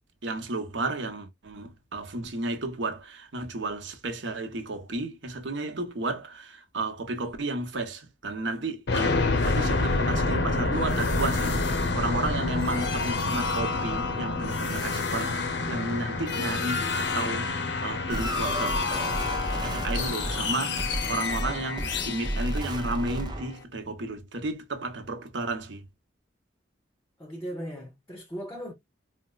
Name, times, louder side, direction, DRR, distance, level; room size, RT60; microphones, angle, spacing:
voice 1, 0.2-9.2 9.4-18.8 19.6-25.9, right 2 dB, 70° right, 0.8 m, -33 dB
sound 1, 8.9-23.5, left 3 dB, 65° left, 0.6 m, -28 dB
sound 2, 18.1-23.6, right 1 dB, 20° right, 0.5 m, -33 dB
voice 2, 27.2-28.7, equal, 15° left, 0.7 m, -37 dB
4.3 x 2.0 x 2.3 m
head